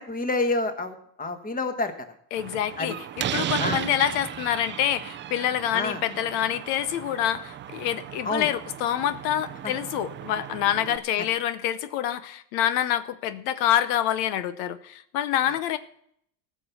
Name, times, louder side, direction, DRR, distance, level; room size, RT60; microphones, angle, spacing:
voice 1, 0.0-1.9 2.8-2.9 3.6-3.8 5.7-6.0 8.2-8.5 9.6-9.7 15.4-15.6, left 2 dB, 15° left, 8 dB, 1.4 m, -28 dB
voice 2, 2.3-15.8, left 11 dB, 75° left, 13 dB, 0.9 m, -26 dB
Slam, 2.4-11.0, right 11 dB, 25° right, 0.4 m, -35 dB
14.5 x 6.1 x 7.1 m, 0.68 s
supercardioid pair, 120°, 49 cm